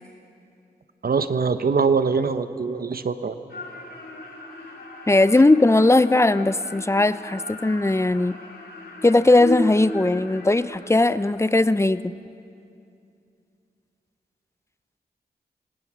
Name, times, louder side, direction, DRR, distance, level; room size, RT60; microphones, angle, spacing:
voice 1, 1.0-3.3, right 5 dB, 60° right, 10 dB, 1.1 m, -23 dB
sound 1, 3.5-11.5, left 2 dB, 70° left, 3.1 m, -36 dB
voice 2, 5.1-8.3 9.0-12.1, left 2 dB, 15° left, 15 dB, 0.6 m, -18 dB
27.0 x 19.0 x 6.2 m, 2.5 s
cardioid pair, 60°, 17 cm